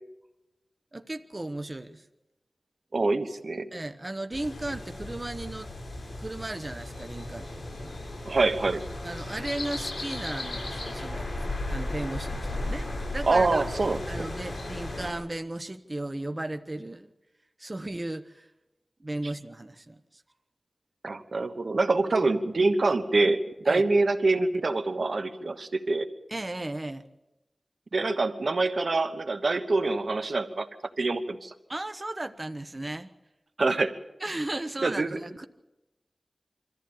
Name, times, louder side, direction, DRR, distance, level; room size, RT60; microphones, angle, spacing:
voice 1, 0.9-2.1 3.7-5.7 6.2-8.0 9.0-13.6 14.1-17.1 17.6-18.5 19.0-20.2 23.7-23.8 26.3-27.0 31.7-33.1 34.2-35.5, right 1 dB, 35° right, 9 dB, 1.1 m, -35 dB
voice 2, 2.9-3.7 8.2-8.8 13.2-14.3 21.0-26.1 27.9-30.7 31.0-31.5 33.6-33.9 34.8-35.1, right 3 dB, 75° right, 10 dB, 1.2 m, -25 dB
sound 1, 4.3-15.1, left 2 dB, 75° left, 7.1 m, -35 dB
24.5 x 14.5 x 8.6 m, 0.98 s
wide cardioid pair, 60°, 0 cm